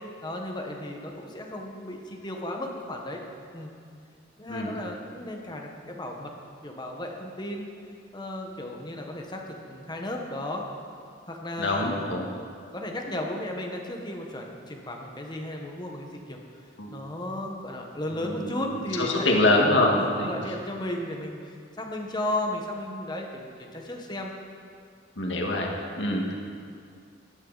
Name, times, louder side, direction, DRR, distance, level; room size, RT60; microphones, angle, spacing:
voice 1, 0.2-3.2 3.5-3.7 4.4-6.3 6.6-7.7 8.1-10.6 11.3-12.0 12.7-16.4 16.9-19.5 19.9-24.3, left 1 dB, 25° left, 1 dB, 1.4 m, -34 dB
voice 2, 11.6-12.3 16.8-16.9 18.2-18.6 19.0-20.3 25.2-25.7 26.0-26.2, left 2 dB, 85° left, -1 dB, 1.8 m, -24 dB
15.0 x 11.5 x 4.1 m, 2.2 s
head